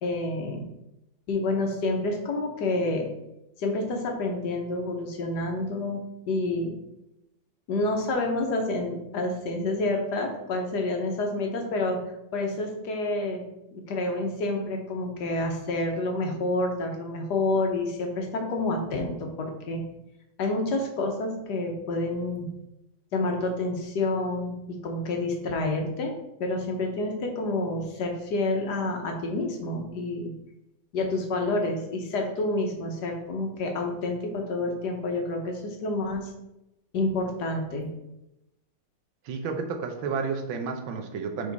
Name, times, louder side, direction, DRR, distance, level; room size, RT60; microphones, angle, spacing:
voice 1, 0.0-0.7 1.3-3.1 3.6-6.7 7.7-12.0 12.3-13.4 13.7-19.8 20.4-22.5 23.1-26.1 26.4-30.3 30.9-36.3 36.9-37.9, left 2 dB, 65° left, 3 dB, 1.5 m, -28 dB
voice 2, 39.2-41.5, right 5 dB, 90° right, 4 dB, 1.6 m, -31 dB
5.0 x 4.9 x 4.0 m, 0.89 s
omnidirectional pair, 2.1 m